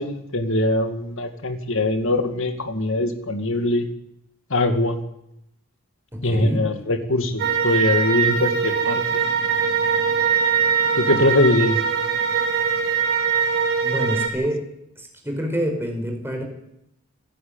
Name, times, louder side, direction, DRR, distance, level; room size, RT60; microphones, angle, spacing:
voice 1, 0.0-3.9 4.5-5.0 6.2-9.2 10.9-11.8, left 1 dB, 65° left, 7 dB, 2.3 m, -22 dB
voice 2, 6.1-6.7 13.8-14.6 15.0-16.4, equal, 10° right, 3 dB, 5.1 m, -27 dB
sound 1, 7.4-14.3, right 6 dB, 50° right, 3.4 m, -22 dB
27.0 x 11.0 x 9.0 m, 0.82 s
head